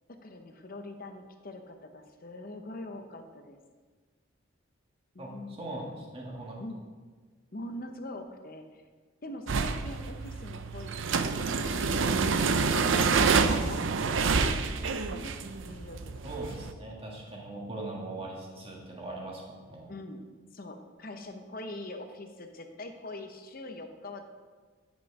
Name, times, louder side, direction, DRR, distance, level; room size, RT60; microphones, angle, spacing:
voice 1, 0.1-3.6 5.1-6.0 6.6-6.8 7.5-8.8 9.2-10.9 11.2-12.2 12.6-13.0 13.3-13.8 14.2-15.4 15.6-16.6 19.9-20.2 20.5-24.2, left 1 dB, 45° left, 6 dB, 0.8 m, -43 dB
voice 2, 5.2-6.6 16.2-19.9, right 2 dB, 25° right, -2 dB, 1.7 m, -40 dB
sound 1, 9.5-16.7, right 4 dB, 65° right, 0.5 m, -27 dB
10.0 x 6.2 x 4.8 m, 1.5 s
head